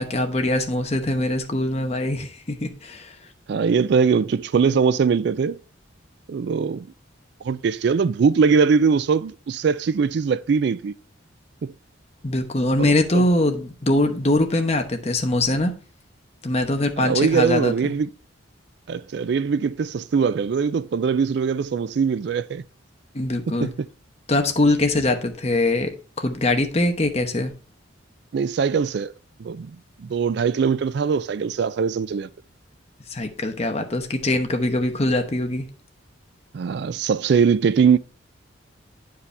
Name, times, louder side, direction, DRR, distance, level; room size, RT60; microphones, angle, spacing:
voice 1, 0.0-3.2 12.2-15.7 16.4-17.9 23.1-23.7 24.3-25.9 26.2-27.5 33.1-35.6, left 1 dB, 35° left, 1.0 m, -22 dB
voice 2, 3.5-5.6 6.3-6.9 7.4-10.9 11.6-11.7 12.8-13.2 17.0-18.1 18.9-22.6 23.5-23.7 28.3-29.1 29.4-29.7 30.0-32.3 36.5-38.0, right 6 dB, 60° right, 0.3 m, -21 dB
10.0 x 4.8 x 3.3 m
head